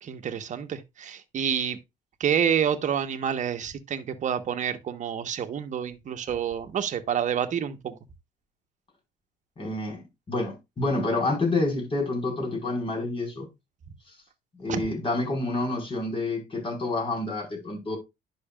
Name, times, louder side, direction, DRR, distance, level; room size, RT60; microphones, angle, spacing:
voice 1, 0.0-1.8 2.2-8.0 14.7-14.8, right 8 dB, 45° right, 1.3 m, -28 dB
voice 2, 9.6-10.0 10.3-13.5 14.6-18.0, left 2 dB, 30° left, 4.9 m, -28 dB
11.0 x 6.3 x 2.4 m
cardioid pair, 110°, 17 cm